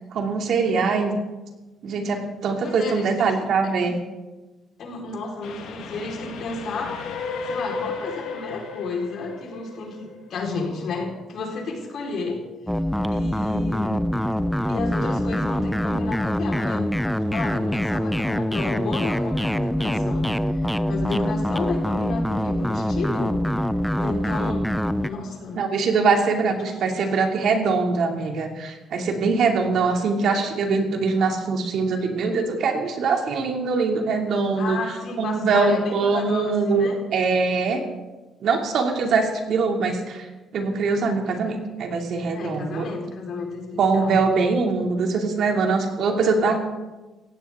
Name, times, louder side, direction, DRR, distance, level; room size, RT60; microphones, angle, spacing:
voice 1, 0.1-1.2 1.8-3.9 25.5-34.8 35.2-37.8 38.4-40.3 40.5-42.9 43.8-46.6, right 4 dB, 65° right, 2 dB, 2.6 m, -22 dB
voice 2, 2.6-3.9 4.8-7.0 7.4-12.4 13.0-14.0 14.7-16.9 17.3-23.4 24.0-24.7 25.0-25.6 34.5-37.0 42.3-44.2, left 3 dB, 60° left, 0 dB, 4.3 m, -32 dB
Train, 5.4-10.7, left 4 dB, 85° left, 2.3 m, -34 dB
sound 1, 12.7-25.1, equal, 5° left, 0.6 m, -24 dB
17.0 x 16.0 x 3.7 m, 1.2 s
cardioid pair, 100°, 0 cm